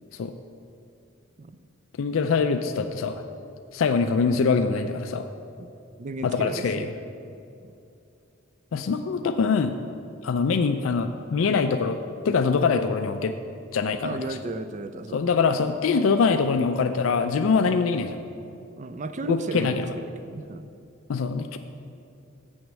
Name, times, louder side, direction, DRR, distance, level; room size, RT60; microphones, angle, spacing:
voice 1, 2.0-3.2 3.7-5.3 6.2-6.9 8.7-9.7 10.2-12.0 12.2-13.3 13.7-14.2 15.1-18.2 19.2-19.9 21.1-21.6, left 5 dB, 90° left, 8 dB, 0.4 m, -23 dB
voice 2, 6.0-6.9 14.0-15.2 18.8-20.7, right 3 dB, 35° right, 10 dB, 0.4 m, -34 dB
7.2 x 6.2 x 7.5 m, 2.6 s
head